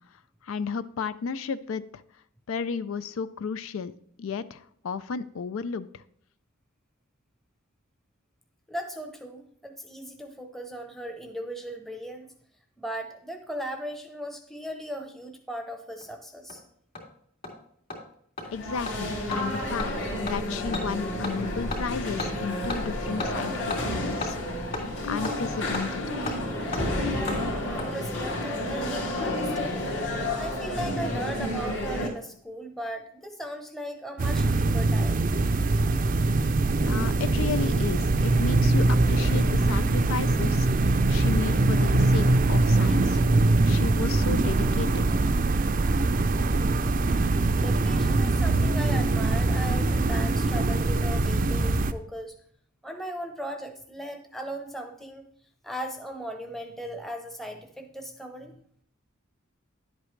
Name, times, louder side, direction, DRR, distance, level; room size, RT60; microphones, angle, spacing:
voice 1, 0.4-2.0 2.5-3.9 4.2-6.0 18.5-24.4 25.1-26.2 36.8-43.2 43.6-45.1, left 5 dB, 85° left, 14 dB, 0.4 m, -33 dB
voice 2, 8.7-12.3 12.8-16.6 27.7-30.0 30.4-35.2 47.4-52.3 52.8-55.3 55.6-58.5, equal, ahead, 5 dB, 0.7 m, -37 dB
Hammer, 16.0-16.1 16.5-16.6 16.9-17.0 17.4-17.5 17.9-18.0 18.4-18.5 18.9-19.0 19.3-19.4 19.8-19.9 20.3-20.4 20.7-20.8 21.2-21.4 21.7-21.8 22.2-22.3 22.7-22.8 23.2-23.3 23.7-23.8 24.2-24.3 24.7-24.8 25.2-25.4 25.7-25.8 26.3-26.4 26.7-26.8 27.3-27.4 27.8-27.9 28.8-29.2 29.4-29.5, left 3 dB, 45° left, 2.9 m, -33 dB
sound 1, 18.4-32.1, left 1 dB, 65° left, 2.6 m, -30 dB
sound 2, 34.2-51.9, right 2 dB, 40° right, 0.4 m, -23 dB
10.5 x 8.1 x 3.2 m, 0.66 s
head